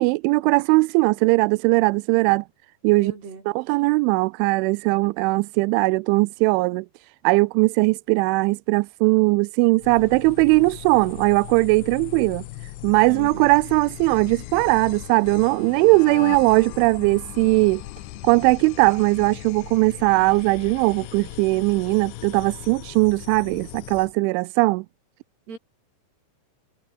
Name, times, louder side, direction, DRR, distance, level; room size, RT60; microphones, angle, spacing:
voice 1, 0.0-2.5 2.8-3.1 3.5-6.9 7.2-12.4 12.8-17.8 18.2-24.8, right 24 dB, 85° right, 2.8 m, -19 dB
voice 2, 2.9-3.4 13.1-13.5 25.5-25.6, right 4 dB, 55° right, 9.2 m, -38 dB
sound 1, 9.8-24.1, left 16 dB, 75° left, 3.2 m, -38 dB
omnidirectional pair, 5.8 m